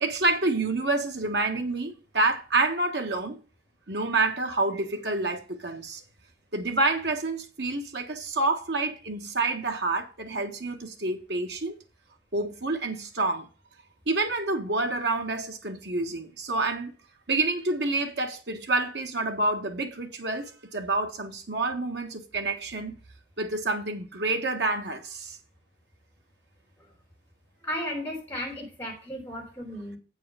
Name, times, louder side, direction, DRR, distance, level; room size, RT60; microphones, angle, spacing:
voice 1, 0.0-3.4 3.9-6.0 6.5-11.7 12.3-13.5 14.1-16.9 17.3-23.0 23.4-25.4, right 2 dB, 65° right, 1.5 m, -28 dB
voice 2, 27.6-30.0, left 1 dB, 10° left, 3.7 m, -34 dB
8.5 x 4.8 x 6.9 m
head